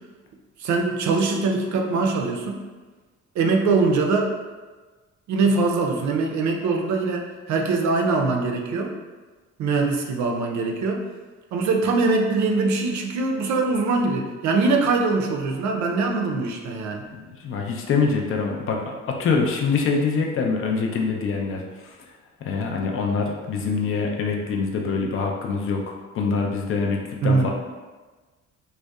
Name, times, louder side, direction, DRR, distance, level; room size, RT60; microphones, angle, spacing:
voice 1, 0.6-2.6 3.4-4.3 5.3-8.9 9.6-11.0 11.5-17.0 27.2-27.5, right 3 dB, 70° right, 2 dB, 0.4 m, -22 dB
voice 2, 17.1-21.9 22.4-27.5, left 4 dB, 45° left, 1 dB, 0.4 m, -25 dB
2.6 x 2.1 x 2.3 m, 1.3 s
cardioid pair, 90°, 30 cm